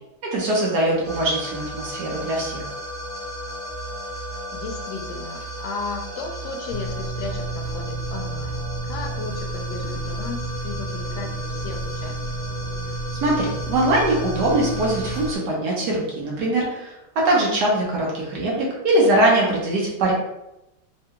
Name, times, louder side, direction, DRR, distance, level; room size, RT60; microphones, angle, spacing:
voice 1, 0.2-2.6 13.2-20.1, right 1 dB, 65° right, -3 dB, 1.3 m, -22 dB
sound 1, 1.0-15.4, left 1 dB, 5° left, 0.9 m, -35 dB
voice 2, 4.2-12.5, left 4 dB, 80° left, 3 dB, 1.3 m, -35 dB
sound 2, 6.7-15.3, right 3 dB, 60° left, 1.0 m, -31 dB
3.6 x 2.2 x 2.9 m, 0.90 s
omnidirectional pair, 2.1 m